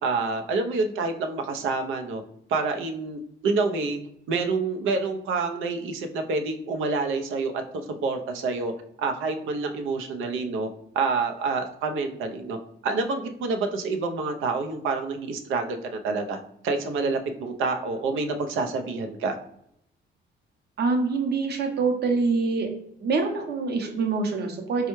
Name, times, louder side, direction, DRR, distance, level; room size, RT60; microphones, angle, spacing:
voice 1, 0.0-2.2 2.5-4.0 4.3-8.7 9.0-10.7 10.9-12.6 12.8-19.4, right 4 dB, 85° right, 5 dB, 0.6 m, -27 dB
voice 2, 20.8-22.7 23.0-24.9, right 4 dB, 55° right, 3 dB, 0.8 m, -25 dB
4.3 x 2.3 x 3.0 m, 0.73 s
cardioid pair, 90°, 20 cm